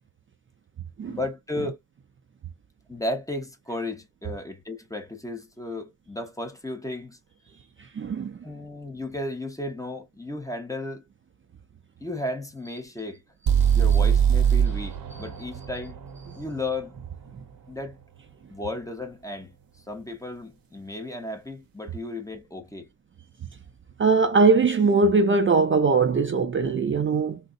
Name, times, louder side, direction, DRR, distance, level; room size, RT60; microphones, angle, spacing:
voice 1, 1.1-1.8 2.9-7.2 8.4-11.0 12.0-13.2 13.7-16.0 16.4-16.9 17.7-18.0 18.5-22.9, left 2 dB, 10° left, 0.7 m, -34 dB
voice 2, 8.0-8.4 13.7-13.8 24.0-27.4, right 4 dB, 35° right, 0.4 m, -21 dB
sound 1, 13.5-17.4, right 8 dB, 65° right, 0.8 m, -23 dB
3.7 x 2.0 x 2.4 m
cardioid pair, 115°, 38 cm